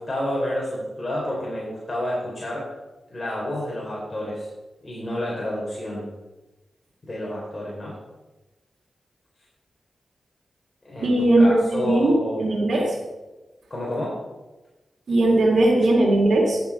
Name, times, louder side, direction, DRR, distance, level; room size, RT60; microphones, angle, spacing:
voice 1, 0.0-2.7 3.1-4.5 4.8-6.1 7.0-8.0 10.8-12.8 13.7-14.2, left 1 dB, 30° left, -5 dB, 3.9 m, -29 dB
voice 2, 11.0-12.8 15.1-16.6, right 2 dB, 65° right, -1 dB, 2.6 m, -19 dB
11.0 x 7.4 x 4.9 m, 1.1 s
cardioid pair, 55°, 0 cm